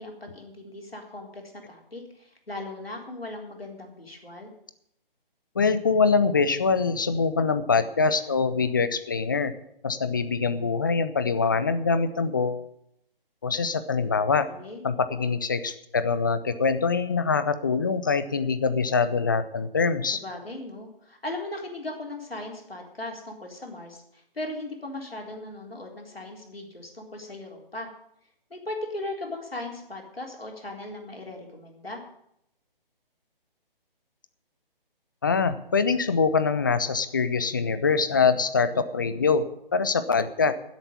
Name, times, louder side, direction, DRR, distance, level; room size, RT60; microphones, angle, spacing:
voice 1, 0.0-4.5 14.4-14.8 20.1-27.9 28.5-32.0, left 2 dB, 80° left, 1 dB, 3.9 m, -38 dB
voice 2, 5.6-9.5 9.8-12.6 13.4-14.5 14.8-20.2 35.2-39.4 39.7-40.5, left 5 dB, 20° left, 12 dB, 0.5 m, -24 dB
11.0 x 8.2 x 9.6 m, 0.76 s
figure-of-eight pair, 145°, 29 cm